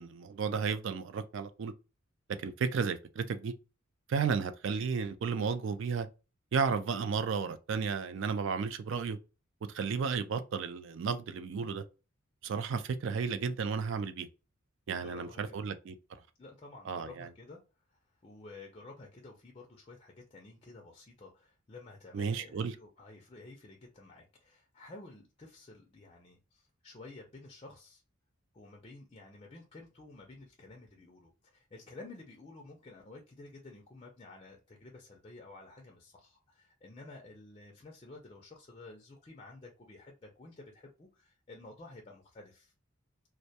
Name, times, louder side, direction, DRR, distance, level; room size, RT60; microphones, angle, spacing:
voice 1, 0.0-1.7 2.4-3.5 4.1-6.1 6.5-9.2 9.7-11.8 12.4-14.3 14.9-16.2 16.9-17.3 22.1-22.7, right 5 dB, 60° right, 0.3 m, -33 dB
voice 2, 14.9-15.7 16.4-17.6 17.9-28.0 28.5-42.7, left 2 dB, 25° left, 0.4 m, -52 dB
2.1 x 2.1 x 2.7 m
head